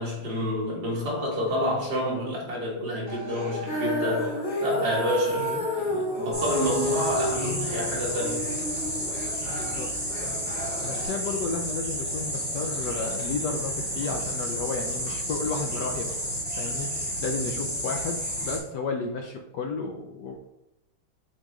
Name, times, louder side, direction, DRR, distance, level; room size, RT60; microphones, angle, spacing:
voice 1, 0.0-8.5 17.4-17.6, equal, 55° right, 2.3 m, -29 dB
sound 1, 3.1-11.1, equal, 25° left, 2.2 m, -41 dB
Female singing, 3.7-9.9, equal, 90° left, 3.1 m, -30 dB
sound 2, 6.3-18.6, equal, 5° right, 2.1 m, -31 dB
voice 2, 9.5-9.9 10.2-10.4 10.8-16.2 16.6-20.5, left 4 dB, 70° left, 1.1 m, -33 dB
7.3 x 4.4 x 3.1 m
omnidirectional pair, 2.2 m